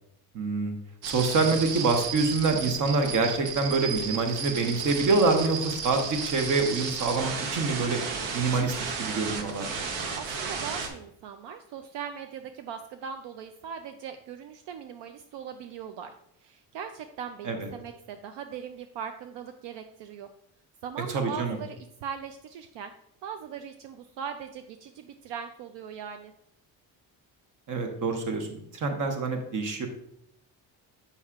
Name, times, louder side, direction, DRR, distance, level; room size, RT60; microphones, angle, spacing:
voice 1, 0.3-0.7 1.0-8.0 8.3-9.7 17.4-17.7 21.1-21.6 27.7-29.9, right 3 dB, 45° right, 5 dB, 0.9 m, -26 dB
sound 1, 1.0-10.9, right 5 dB, 90° right, 1.0 m, -34 dB
voice 2, 10.1-16.1 16.4-20.3 20.8-22.9 23.2-26.3, right 7 dB, 75° right, 7 dB, 0.5 m, -40 dB
7.1 x 5.5 x 2.4 m, 0.74 s
cardioid pair, 170°, 44 cm